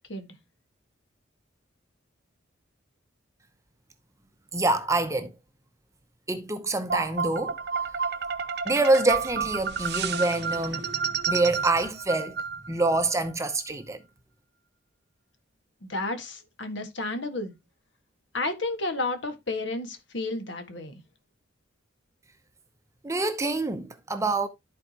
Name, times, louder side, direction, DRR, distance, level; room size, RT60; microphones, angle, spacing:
voice 1, 4.5-5.3 6.3-7.6 8.6-12.4 12.7-14.0 23.0-24.5, right 2 dB, 15° right, 0.8 m, -26 dB
sound 1, 6.9-13.0, right 6 dB, 55° right, 0.9 m, -30 dB
voice 2, 15.8-17.5 18.3-20.9, left 2 dB, 65° left, 1.7 m, -32 dB
13.5 x 4.6 x 2.9 m
head